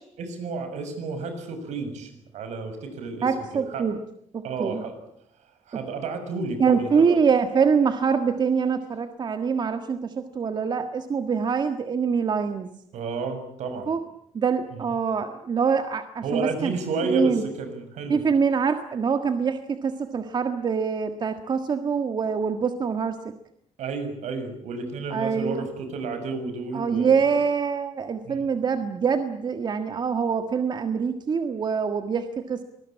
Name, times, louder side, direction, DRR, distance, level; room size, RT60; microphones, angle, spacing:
voice 1, 0.2-3.3 3.5-3.8 4.4-4.9 5.7-7.2 12.9-13.9 14.7-14.8 16.2-18.2 23.8-27.2 28.2-28.5, right 3 dB, 75° right, 7 dB, 6.7 m, -31 dB
voice 2, 3.2-4.0 4.3-4.8 6.6-12.7 13.9-14.0 14.3-16.7 17.1-17.4 18.1-23.2 25.1-25.7 26.7-32.6, right 6 dB, 40° right, 8 dB, 1.7 m, -24 dB
25.5 x 20.5 x 8.6 m, 0.70 s
cardioid pair, 135°, 12 cm